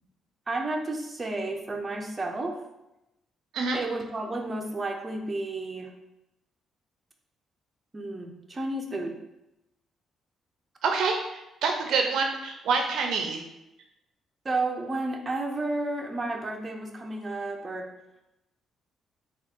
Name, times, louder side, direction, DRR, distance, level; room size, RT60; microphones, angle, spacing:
voice 1, 0.5-2.6 3.7-5.9 7.9-9.2 14.4-17.9, right 2 dB, 25° right, 2 dB, 0.6 m, -32 dB
voice 2, 10.8-13.4, right 4 dB, 80° right, 3 dB, 0.5 m, -27 dB
3.6 x 2.4 x 4.4 m, 0.91 s
cardioid pair, 90°, 0 cm